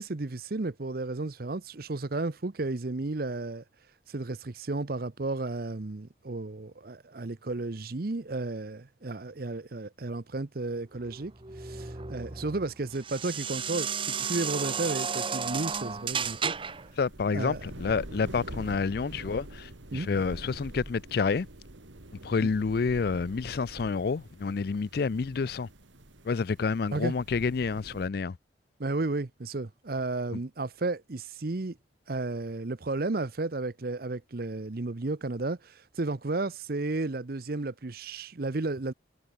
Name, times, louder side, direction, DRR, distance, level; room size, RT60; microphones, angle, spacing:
voice 1, 0.0-3.6 4.1-11.3 11.6-16.5 17.3-17.6 19.9-20.1 26.9-27.1 28.8-31.8 32.1-38.9, right 2 dB, 55° right, 0.8 m, -33 dB
sound 1, 11.0-16.9, right 6 dB, 30° right, 1.2 m, -33 dB
sound 2, 15.4-28.1, right 1 dB, 90° right, 2.2 m, -46 dB
voice 2, 17.0-21.5 22.2-25.7 26.2-28.4 30.3-30.4, left 4 dB, 55° left, 0.4 m, -29 dB
head